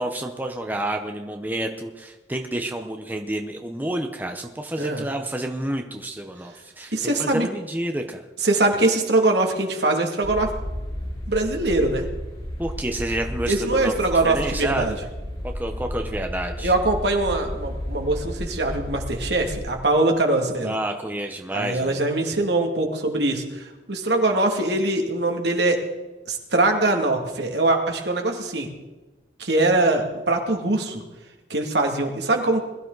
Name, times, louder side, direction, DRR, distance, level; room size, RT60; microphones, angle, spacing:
voice 1, 0.0-8.2 12.6-13.9 14.2-15.0 15.5-16.7 20.6-22.0, right 1 dB, 10° right, 4 dB, 0.8 m, -29 dB
voice 2, 6.9-7.5 8.4-10.5 11.3-12.0 13.5-14.9 16.6-20.8 21.5-25.8 26.3-28.7 29.4-31.0 31.5-32.6, right 2 dB, 70° right, 2 dB, 2.4 m, -22 dB
sound 1, 10.2-19.6, equal, 35° left, 5.5 m, -33 dB
21.5 x 12.5 x 4.0 m, 1.1 s
head